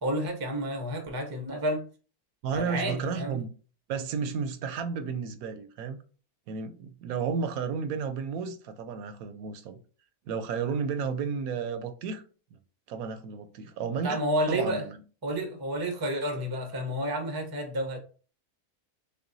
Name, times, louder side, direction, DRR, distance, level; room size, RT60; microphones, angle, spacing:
voice 1, 0.0-1.9 2.5-3.4 14.0-14.9 15.2-18.0, equal, 25° right, 0.5 m, -30 dB
voice 2, 2.4-3.5 3.9-6.0 6.5-9.8 10.3-12.2 12.5-12.6 12.9-14.2 14.5-15.0, right 6 dB, 75° right, 1.0 m, -32 dB
6.6 x 2.2 x 2.6 m
omnidirectional pair, 1.6 m